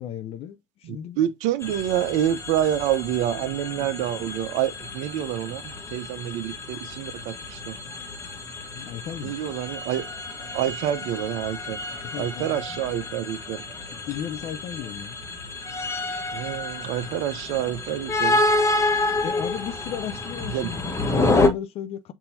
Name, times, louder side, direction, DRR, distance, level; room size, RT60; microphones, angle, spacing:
voice 1, 0.0-1.2 8.7-9.4 12.0-12.8 13.9-15.2 17.0-17.2 19.2-22.1, left 10 dB, 40° left, 0.6 m, -34 dB
voice 2, 0.8-7.8 9.2-10.1 10.5-11.8 12.2-13.6 16.3-18.4 20.5-20.7, right 11 dB, 50° right, 0.6 m, -27 dB
sound 1, 1.6-21.5, left 2 dB, 15° left, 1.0 m, -29 dB
6.9 x 2.7 x 2.7 m
hypercardioid pair, 80°, 16 cm